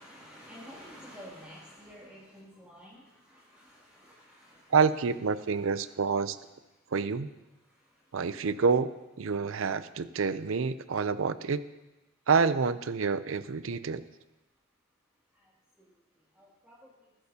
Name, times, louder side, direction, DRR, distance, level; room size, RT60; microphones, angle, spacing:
voice 1, 0.0-6.5 7.5-8.6 15.3-15.5 15.8-16.0 16.3-17.1, equal, 5° right, -9 dB, 2.6 m, -52 dB
voice 2, 4.7-6.4 6.9-7.3 8.1-8.9 9.2-11.6 12.3-14.0, right 5 dB, 70° right, 14 dB, 0.5 m, -27 dB
20.0 x 11.0 x 2.8 m, 1.0 s
head